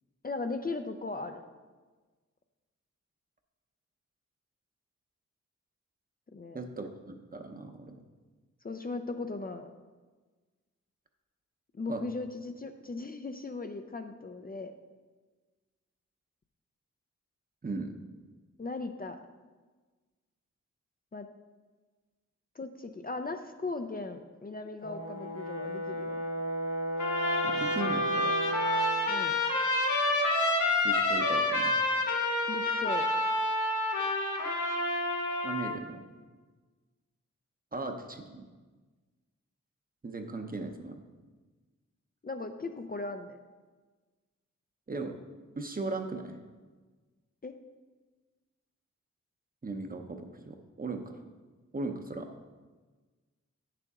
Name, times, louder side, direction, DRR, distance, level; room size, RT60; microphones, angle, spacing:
voice 1, 0.2-1.4 6.3-6.6 8.6-9.7 11.7-14.7 18.6-19.2 21.1-21.3 22.6-26.2 29.1-29.4 32.5-33.1 42.2-43.4 47.4-47.5, left 3 dB, 30° left, 6 dB, 0.5 m, -38 dB
voice 2, 6.5-8.0 11.9-12.0 17.6-17.9 27.4-28.3 30.8-31.8 35.4-36.0 37.7-38.4 40.0-41.0 44.9-45.2 45.6-46.4 49.6-51.2 51.7-52.3, right 3 dB, 30° right, 5 dB, 0.7 m, -37 dB
Brass instrument, 24.8-29.0, right 1 dB, 50° left, 1.6 m, -34 dB
Trumpet, 27.0-35.8, left 2 dB, 90° left, 1.2 m, -28 dB
9.0 x 6.8 x 3.6 m, 1.3 s
wide cardioid pair, 90°, 29 cm